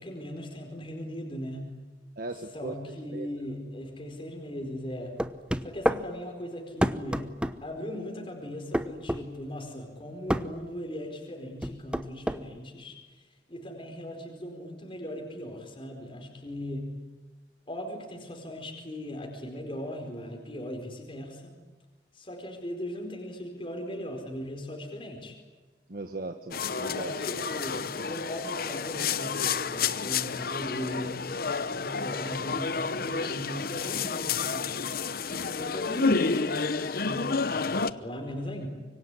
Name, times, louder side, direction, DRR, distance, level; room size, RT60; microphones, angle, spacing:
voice 1, 0.0-1.7 2.5-5.2 5.6-7.3 7.6-12.9 13.5-16.9 17.7-21.6 22.1-25.3 26.7-31.3 31.6-34.9 35.5-36.5 36.9-38.7, equal, 30° left, 2 dB, 4.6 m, -38 dB
voice 2, 2.2-3.3 25.9-27.1, right 2 dB, 55° right, 6 dB, 1.4 m, -38 dB
sound 1, 5.2-6.0 6.8-7.6 8.7-9.2 10.3-10.5 11.6-12.4, equal, 5° right, 0.9 m, -27 dB
sound 2, 26.5-37.9, left 5 dB, 55° left, 0.9 m, -30 dB
25.5 x 23.5 x 9.8 m, 1.3 s
head